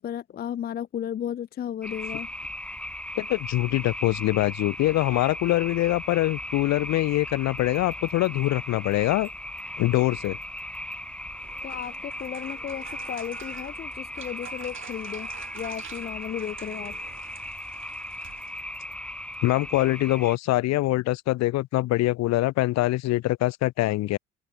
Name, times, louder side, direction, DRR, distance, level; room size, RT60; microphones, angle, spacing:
voice 1, 0.0-2.3 11.6-15.3 15.5-16.9, left 10 dB, 30° left, 0.5 m, -34 dB
sound 1, 1.8-20.4, left 1 dB, 5° left, 1.5 m, -37 dB
voice 2, 3.2-9.3 9.8-10.4 19.4-24.2, left 17 dB, 60° left, 1.0 m, -24 dB
sound 2, 7.6-9.7 10.2-11.8 12.2-12.3 12.9-15.0 15.6-17.9 18.2-19.3, right 12 dB, 60° right, 6.8 m, -58 dB
sound 3, 11.3-18.9, right 9 dB, 40° right, 2.0 m, -47 dB
open air
supercardioid pair, 75°, 30 cm